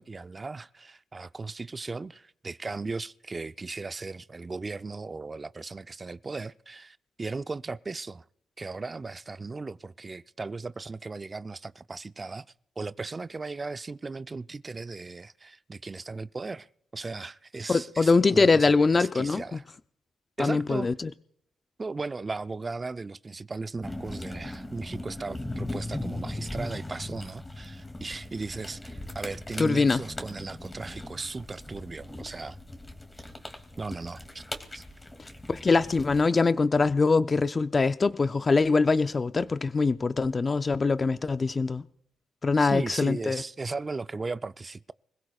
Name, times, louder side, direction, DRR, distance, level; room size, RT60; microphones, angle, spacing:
voice 1, 0.0-8.2 8.6-12.5 12.8-16.7 16.9-18.7 19.0-19.6 20.4-20.9 21.8-32.6 33.8-34.4 34.7-34.8 42.6-44.9, right 3 dB, 30° right, 0.5 m, -37 dB
voice 2, 17.7-19.6 20.4-21.1 29.6-30.0 35.5-41.8 42.4-43.4, left 4 dB, 35° left, 0.5 m, -23 dB
sound 1, 23.8-36.3, left 1 dB, 15° left, 2.5 m, -39 dB
26.0 x 16.5 x 2.4 m
supercardioid pair, 65°, 0 cm